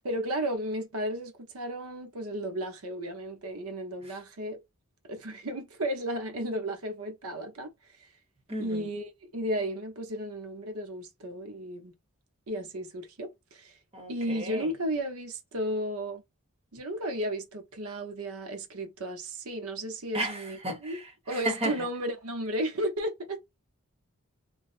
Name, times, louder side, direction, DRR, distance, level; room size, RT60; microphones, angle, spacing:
voice 1, 0.0-4.6 5.0-7.7 8.0-8.1 8.6-11.9 12.5-13.8 14.1-16.2 16.7-21.0 21.3-23.4, right 1 dB, 80° right, 0.8 m, -34 dB
voice 2, 8.5-8.9 13.9-14.7 20.1-21.0 21.3-21.7, right 1 dB, 25° right, 1.0 m, -33 dB
3.0 x 2.0 x 2.5 m
head